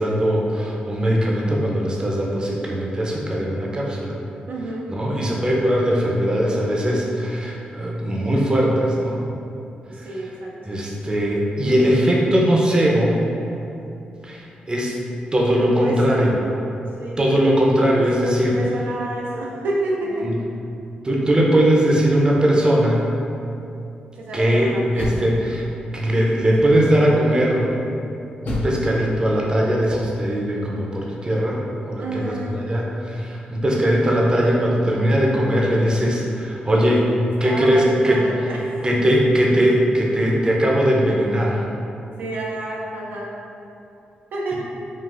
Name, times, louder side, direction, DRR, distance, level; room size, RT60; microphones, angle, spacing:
voice 1, 0.0-4.2 4.9-9.2 10.0-10.1 10.7-13.2 14.2-14.9 15.3-16.3 17.2-18.5 20.2-20.3 21.0-23.1 24.3-25.7 25.9-27.7 28.5-37.0 37.4-38.2 38.8-41.6, equal, 25° right, -3 dB, 0.6 m, -20 dB
voice 2, 4.5-4.9 9.9-10.5 13.5-13.7 15.5-16.5 17.0-17.2 18.2-20.3 24.1-24.9 32.0-32.6 36.7-38.8 42.2-43.3 44.3-44.6, right 1 dB, 75° right, -3 dB, 0.4 m, -29 dB
Door, 24.7-25.9 26.5-27.1 28.4-30.3, left 1 dB, 65° left, 0.6 m, -32 dB
3.8 x 2.4 x 2.4 m, 2.7 s
cardioid pair, 60°, 3 cm